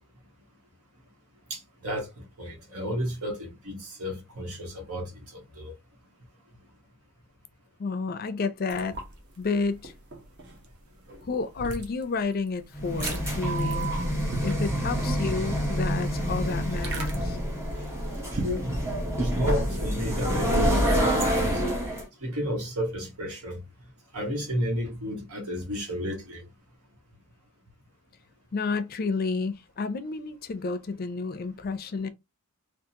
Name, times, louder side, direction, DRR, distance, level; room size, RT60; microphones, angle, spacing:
voice 1, 1.5-5.1 5.6-5.7 18.3-18.8 19.1-21.6 22.2-23.6 24.1-26.4, equal, 85° right, 1.4 m, -32 dB
voice 2, 7.8-9.0 9.4-9.9 11.2-13.9 14.4-17.4 28.5-32.1, left 4 dB, 45° left, 0.4 m, -30 dB
sound 1, 8.7-18.6, right 2 dB, 50° right, 0.8 m, -41 dB
sound 2, 12.7-22.0, equal, 15° right, 1.3 m, -27 dB
3.6 x 2.4 x 2.8 m
head